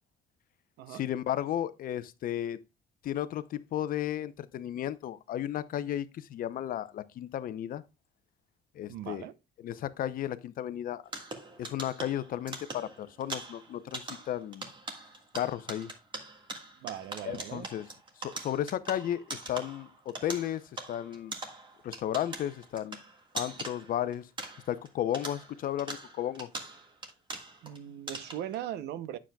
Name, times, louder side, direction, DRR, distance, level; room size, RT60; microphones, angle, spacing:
voice 1, 0.9-2.6 3.0-7.8 8.7-9.2 9.6-11.0 11.6-14.7 15.3-15.9 17.2-17.9 18.2-21.3 21.8-23.0 23.3-24.3 24.7-26.5, left 11 dB, 55° left, 0.6 m, -34 dB
voice 2, 8.9-9.3 16.8-17.7 27.6-29.2, right 11 dB, 80° right, 0.7 m, -39 dB
sound 1, 11.1-24.9 25.1-27.8 28.1-28.6, right 2 dB, 30° right, 1.6 m, -42 dB
9.1 x 7.3 x 2.2 m
cardioid pair, 110°, 17 cm